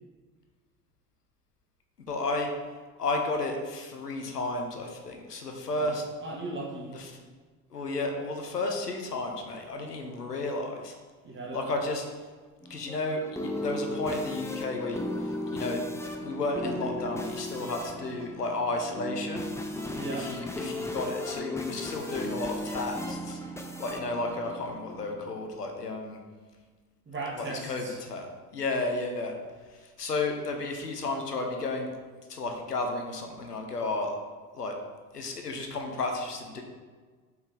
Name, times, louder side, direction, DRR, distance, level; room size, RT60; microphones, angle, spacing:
voice 1, 2.1-2.5 3.0-6.0 6.9-7.2 7.7-10.9 11.5-12.0 12.7-15.8 16.2-19.4 20.1-23.4 23.8-26.2 27.4-29.3 29.7-31.9 32.3-34.2 34.5-34.7 35.1-36.6, left 2 dB, 85° left, 3 dB, 1.0 m, -32 dB
voice 2, 6.2-6.9 11.2-11.6 19.9-20.3 27.1-28.0, right 2 dB, 25° right, -2 dB, 2.3 m, -37 dB
sound 1, 12.6-25.3, left 1 dB, 5° left, 0.8 m, -36 dB
7.1 x 5.5 x 4.0 m, 1.4 s
figure-of-eight pair, 65°, 46 cm